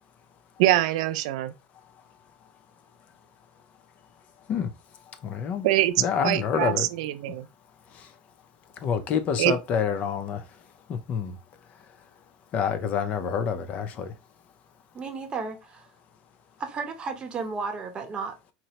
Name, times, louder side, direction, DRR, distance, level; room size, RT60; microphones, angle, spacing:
voice 1, 0.6-1.5 5.6-5.9 6.2-7.5 9.4-9.5, right 15 dB, 80° right, 0.3 m, -24 dB
voice 2, 5.2-5.7 6.0-6.9 8.8-10.4 10.9-11.4 12.5-14.1, left 7 dB, 45° left, 0.5 m, -27 dB
voice 3, 14.9-15.9 16.6-18.5, right 4 dB, 25° right, 0.8 m, -33 dB
4.2 x 2.0 x 2.8 m
supercardioid pair, 125°, 3 cm